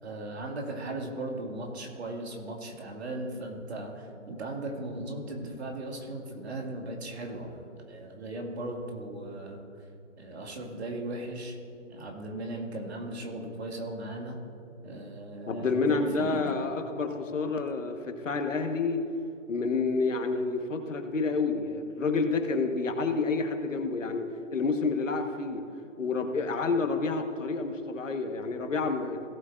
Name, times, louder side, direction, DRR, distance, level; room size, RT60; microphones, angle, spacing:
voice 1, 0.0-9.6 10.2-11.6 11.9-14.4 14.8-16.6, right 2 dB, 55° right, 1 dB, 2.3 m, -37 dB
voice 2, 15.5-19.0 19.5-25.6 26.0-29.2, left 4 dB, 75° left, 5 dB, 1.5 m, -29 dB
17.5 x 8.1 x 2.6 m, 2.6 s
hypercardioid pair, 150°, 38 cm